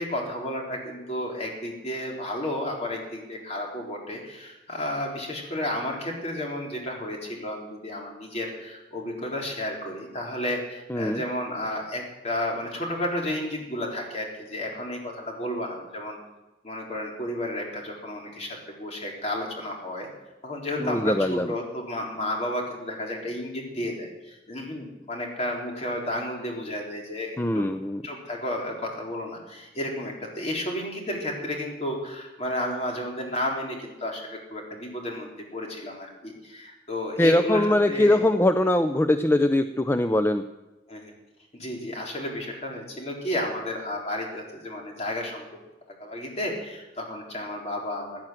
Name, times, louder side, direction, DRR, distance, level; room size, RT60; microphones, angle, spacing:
voice 1, 0.0-16.2 16.6-20.1 20.4-27.7 28.0-38.2 40.9-41.1 41.5-45.5 45.9-48.2, left 1 dB, 40° left, 0 dB, 3.8 m, -32 dB
voice 2, 20.8-21.5 27.4-28.0 37.2-40.4, left 1 dB, 15° left, 9 dB, 0.5 m, -22 dB
16.5 x 10.5 x 7.7 m, 1.1 s
head